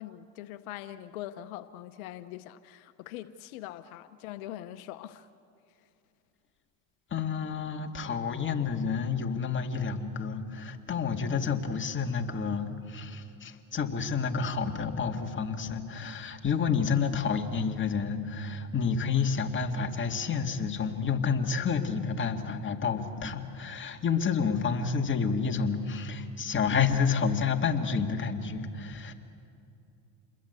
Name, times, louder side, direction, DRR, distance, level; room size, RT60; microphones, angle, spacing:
voice 1, 0.0-5.3, left 13 dB, 80° left, 11 dB, 0.9 m, -42 dB
voice 2, 7.1-29.1, left 5 dB, 30° left, 4 dB, 2.2 m, -29 dB
28.0 x 21.5 x 8.2 m, 2.6 s
supercardioid pair, 100°, 42 cm